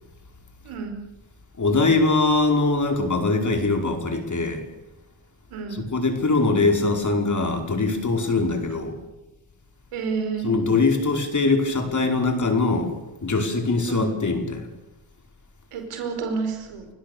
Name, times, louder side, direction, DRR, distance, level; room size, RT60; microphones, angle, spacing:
voice 1, 0.6-1.0 5.5-5.8 8.7-8.8 9.9-10.5 13.9-14.2 15.7-16.9, right 5 dB, 90° right, 6 dB, 4.9 m, -30 dB
voice 2, 1.6-4.6 5.7-9.0 10.4-12.9 13.2-14.7, left 3 dB, 35° left, 4 dB, 5.2 m, -22 dB
30.0 x 16.5 x 7.1 m, 1.0 s
cardioid pair, 75°, 49 cm